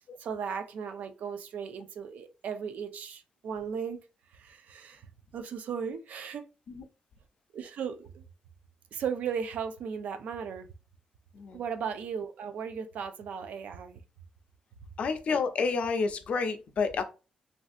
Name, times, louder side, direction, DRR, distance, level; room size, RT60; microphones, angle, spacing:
voice 1, 0.2-4.0 4.3-6.5 7.5-8.2 8.9-10.7 11.5-14.0, right 7 dB, 75° right, 0.4 m, -36 dB
voice 2, 15.0-17.0, left 4 dB, 50° left, 0.4 m, -29 dB
3.2 x 2.6 x 2.3 m
wide cardioid pair, 180°, 3 cm